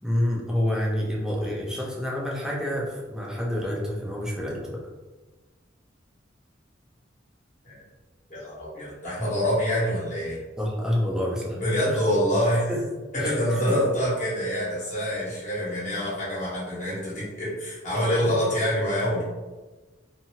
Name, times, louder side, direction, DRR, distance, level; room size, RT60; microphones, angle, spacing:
voice 1, 0.0-4.8 10.6-11.6 11.9-12.0 12.7-12.8 13.2-13.4 13.7-13.8, left 1 dB, 5° right, -4 dB, 0.6 m, -28 dB
voice 2, 8.3-10.4 11.5-12.7 13.1-19.2, equal, 40° left, -8 dB, 1.3 m, -26 dB
2.7 x 2.6 x 2.8 m, 1.2 s
head